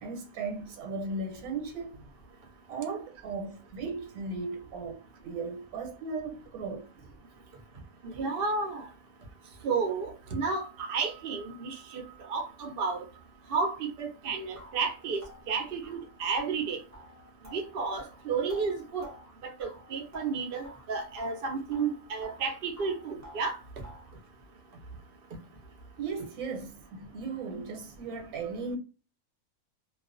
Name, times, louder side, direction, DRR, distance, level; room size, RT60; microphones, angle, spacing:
voice 1, 0.0-2.0 2.7-6.9 26.0-28.8, right 4 dB, 85° right, 1.1 m, -37 dB
voice 2, 8.0-8.9 9.6-12.0 12.3-13.0 13.5-15.2 15.5-16.8 17.5-19.1 19.4-23.6, right 5 dB, 65° right, 0.5 m, -32 dB
sound 1, 14.0-14.1 14.6-20.9 21.2-22.5 22.8-24.2, left 1 dB, 20° right, 0.6 m, -51 dB
2.3 x 2.3 x 2.4 m
omnidirectional pair, 1.5 m